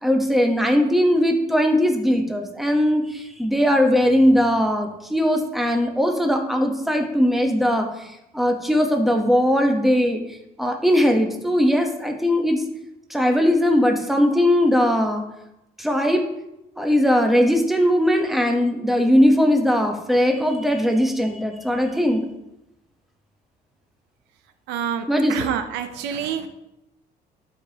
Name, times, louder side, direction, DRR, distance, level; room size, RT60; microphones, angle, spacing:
voice 1, 0.0-10.2 10.6-12.6 13.1-15.2 15.8-16.2 16.8-22.2 25.1-25.5, equal, ahead, 3 dB, 1.0 m, -19 dB
voice 2, 24.7-26.5, right 8 dB, 90° right, 9 dB, 0.7 m, -27 dB
12.0 x 5.1 x 2.9 m, 0.88 s
cardioid pair, 110°, 17 cm